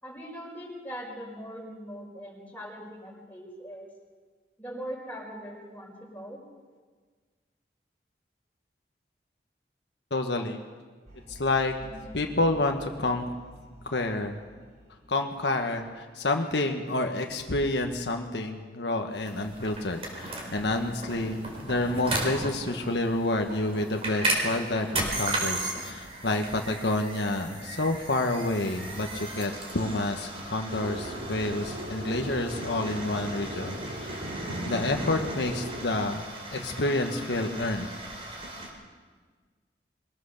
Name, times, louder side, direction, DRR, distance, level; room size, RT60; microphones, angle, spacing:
voice 1, 0.0-3.9 4.6-6.4, equal, 10° left, -2 dB, 5.2 m, -41 dB
voice 2, 10.1-10.6 11.3-11.7 12.1-13.3 13.8-14.4 15.1-34.3 34.7-36.2 36.5-37.9, left 2 dB, 80° left, 4 dB, 1.4 m, -29 dB
sound 1, 11.1-16.0, equal, 50° right, 4.3 m, -50 dB
sound 2, 19.2-38.7, right 1 dB, 35° right, 4.0 m, -36 dB
sound 3, 30.7-35.8, equal, 80° right, 2.9 m, -38 dB
23.0 x 17.5 x 6.7 m, 1.5 s
head